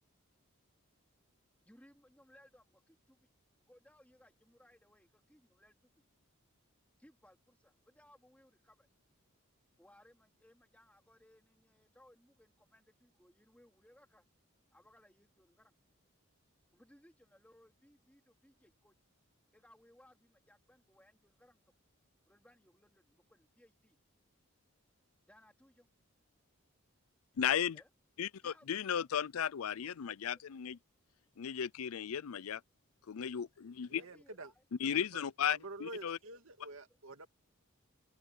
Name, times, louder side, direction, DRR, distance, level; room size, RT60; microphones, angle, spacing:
voice 1, 1.6-3.3 3.7-5.9 7.0-8.9 9.8-14.2 14.7-15.7 16.7-19.0 19.5-21.6 22.3-24.0 25.3-25.9 27.7-27.9 28.4-29.1 34.0-34.6 36.2-36.4, left 1 dB, 5° left, 3.1 m, -65 dB
voice 2, 27.4-27.8 28.2-30.8 31.4-32.6 33.1-34.0 34.8-36.2, left 8 dB, 80° left, 0.5 m, -35 dB
voice 3, 33.9-34.5 34.9-37.3, right 2 dB, 65° right, 2.3 m, -48 dB
open air
head